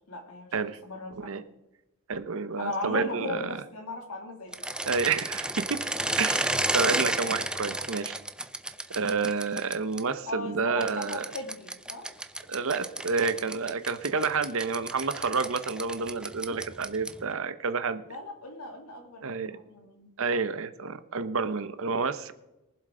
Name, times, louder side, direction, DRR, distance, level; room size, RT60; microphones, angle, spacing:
voice 1, 0.1-0.5 0.8-1.3 2.6-4.5 10.3-12.1 18.1-20.1, left 2 dB, 80° left, 3 dB, 2.7 m, -37 dB
voice 2, 2.1-3.5 4.8-5.8 6.2-8.2 8.9-11.2 12.5-18.0 19.2-19.6 20.2-22.3, right 4 dB, 65° right, 12 dB, 0.8 m, -29 dB
sound 1, 4.5-10.0 10.8-17.3, right 1 dB, 5° right, 0.4 m, -32 dB
23.0 x 7.6 x 3.8 m, 0.97 s
head